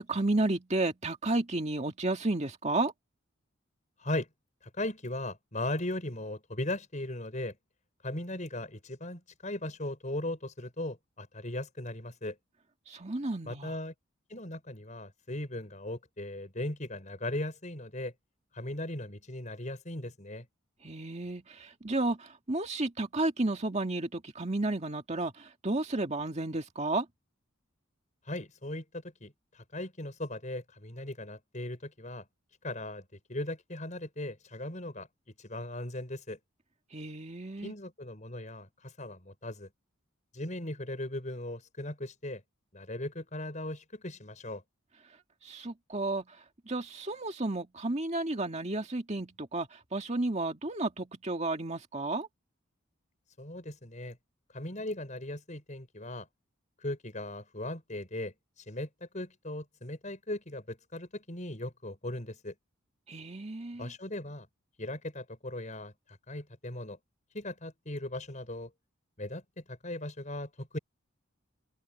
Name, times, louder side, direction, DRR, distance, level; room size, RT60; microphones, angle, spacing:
voice 1, 0.0-2.9 12.9-13.7 20.8-27.1 36.9-37.7 45.4-52.3 63.1-63.9, right 2 dB, 35° right, 2.0 m, -32 dB
voice 2, 4.6-7.6 8.0-12.4 13.4-13.9 14.3-18.1 18.5-20.5 28.3-32.2 32.6-33.0 33.3-35.1 35.4-36.4 37.6-39.7 40.3-42.4 42.7-44.6 53.4-54.2 54.5-56.3 56.8-58.3 58.7-62.5 63.8-64.5 64.8-65.9 66.3-67.0 67.3-68.7 69.2-69.4 69.7-70.8, left 1 dB, 35° left, 5.7 m, -38 dB
open air
head